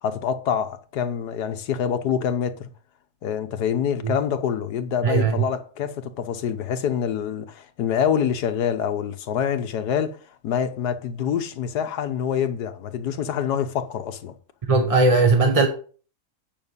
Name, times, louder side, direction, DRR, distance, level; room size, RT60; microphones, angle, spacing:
voice 1, 0.0-2.7 3.2-10.2 10.4-14.3, left 8 dB, 90° left, 1.5 m, -26 dB
voice 2, 5.0-5.4 14.7-15.7, right 3 dB, 30° right, 0.8 m, -18 dB
9.0 x 6.0 x 5.4 m
omnidirectional pair, 1.7 m